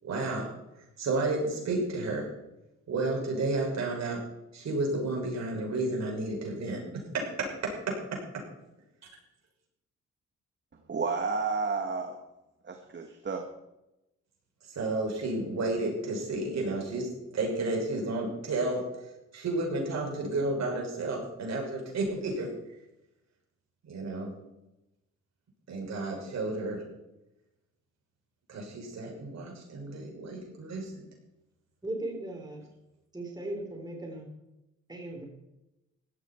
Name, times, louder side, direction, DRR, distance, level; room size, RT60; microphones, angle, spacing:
voice 1, 0.0-0.5 1.0-2.3 2.9-4.2 4.5-6.8 7.1-7.7 14.7-17.1 17.3-18.8 19.3-22.5 23.8-24.3 25.7-26.8 28.5-31.0, right 2 dB, 60° right, -1 dB, 6.4 m, -31 dB
voice 2, 10.9-12.2 12.6-13.5, right 4 dB, 35° right, 4 dB, 1.9 m, -31 dB
voice 3, 31.8-32.7 33.1-34.3 34.9-35.3, right 1 dB, 15° right, 1 dB, 3.9 m, -37 dB
16.5 x 13.0 x 4.6 m, 0.93 s
cardioid pair, 90°, 30 cm